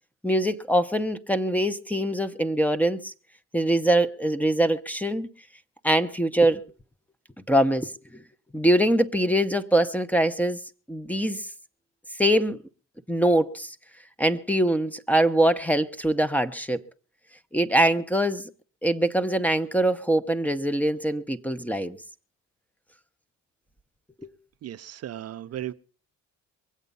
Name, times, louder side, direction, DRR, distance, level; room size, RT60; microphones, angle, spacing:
voice 1, 0.2-3.1 3.5-5.3 5.8-6.6 7.5-7.9 8.5-10.6 10.9-11.4 12.2-12.6 13.1-13.7 14.2-16.8 17.5-18.5 18.8-22.0 24.2-24.3, right 1 dB, 5° left, 0.9 m, -23 dB
voice 2, 24.6-25.7, right 12 dB, 55° right, 0.6 m, -35 dB
23.0 x 8.2 x 5.5 m
cardioid pair, 90°, 30 cm